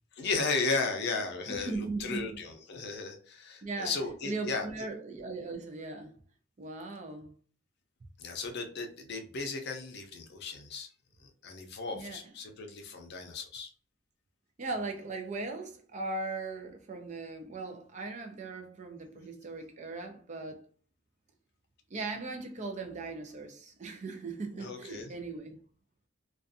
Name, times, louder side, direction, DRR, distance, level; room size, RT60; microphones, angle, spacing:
voice 1, 0.1-4.7 8.2-10.9 11.4-13.7 24.6-25.1, left 4 dB, 55° left, 0.5 m, -35 dB
voice 2, 1.5-2.4 3.6-3.9 4.2-6.2 6.6-7.3 11.9-12.2 14.6-20.6 21.9-25.6, right 3 dB, 35° right, 0.4 m, -38 dB
2.5 x 2.3 x 2.6 m
head